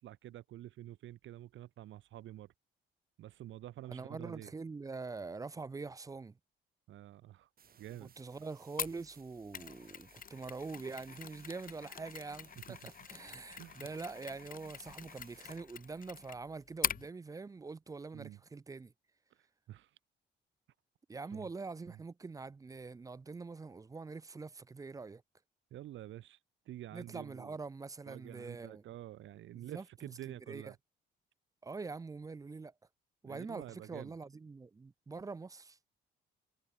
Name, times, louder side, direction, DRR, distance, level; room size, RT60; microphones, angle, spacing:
voice 1, 0.0-2.5 3.2-4.5 6.9-7.5 7.8-8.1 12.7-12.8 13.6-13.9 18.1-18.4 19.3-20.0 21.3-21.5 21.9-22.0 25.7-26.4 26.7-27.6 28.1-30.8 33.3-34.1, right 13 dB, 75° right, 1.1 m, -49 dB
voice 2, 3.9-6.4 8.0-18.9 21.1-25.2 26.9-28.8 29.5-30.7 31.6-32.7 33.2-35.8, right 4 dB, 15° right, 0.4 m, -44 dB
sound 1, 7.6-15.6, right 7 dB, 50° right, 2.6 m, -64 dB
Mechanisms, 8.8-17.1, left 8 dB, 45° left, 0.8 m, -43 dB
cardioid pair, 90°, 20 cm